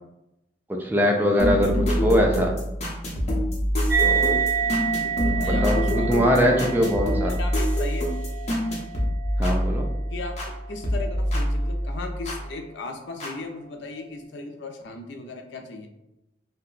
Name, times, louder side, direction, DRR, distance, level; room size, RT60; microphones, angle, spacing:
voice 1, 0.7-2.5 4.0-4.4 5.4-7.4 9.4-9.9, equal, 10° right, 1 dB, 0.3 m, -22 dB
voice 2, 1.4-1.7 4.6-6.6 7.2-8.1 10.1-10.3 10.7-15.9, left 3 dB, 85° left, 5 dB, 0.5 m, -36 dB
sound 1, 1.4-10.5 10.8-12.4 13.2-13.3, equal, 35° left, 0.8 m, -25 dB
sound 2, 3.9-10.8, right 7 dB, 65° right, 0.7 m, -29 dB
2.8 x 2.2 x 3.8 m, 0.89 s
head